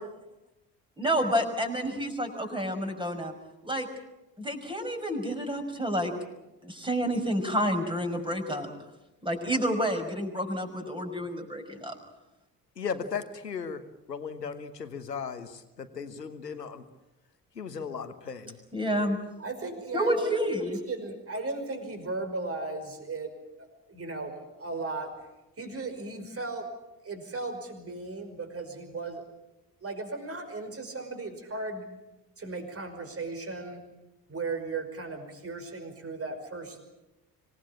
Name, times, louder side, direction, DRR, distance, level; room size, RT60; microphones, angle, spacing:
voice 1, 1.0-3.3 3.6-3.9 4.4-6.1 6.6-8.7 9.2-12.0 18.7-19.2 19.9-20.8, equal, 10° right, 4 dB, 5.8 m, -29 dB
voice 2, 12.8-13.8 14.1-16.8 17.5-18.6, left 6 dB, 85° left, 11 dB, 1.4 m, -36 dB
voice 3, 19.4-23.3 23.6-25.1 25.6-26.7 27.0-29.2 29.8-31.9 32.4-33.8 34.3-36.8, right 3 dB, 30° right, 6 dB, 5.4 m, -36 dB
26.0 x 18.5 x 8.8 m, 0.96 s
figure-of-eight pair, 50°, 48 cm